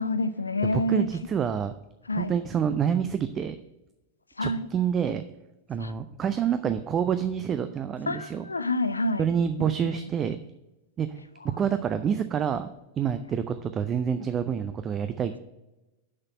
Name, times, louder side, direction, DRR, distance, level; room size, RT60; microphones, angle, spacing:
voice 1, 0.0-1.1 2.1-2.3 4.4-4.7 5.8-5.9 8.1-9.3 9.6-10.0, left 2 dB, 80° left, 0.5 m, -28 dB
voice 2, 0.7-1.7 2.1-3.6 4.4-5.2 5.7-8.4 9.2-10.4 11.0-11.2 11.6-12.7 13.0-15.3, right 8 dB, 25° right, 0.4 m, -27 dB
6.4 x 5.8 x 7.0 m
figure-of-eight pair, 90°, 0 cm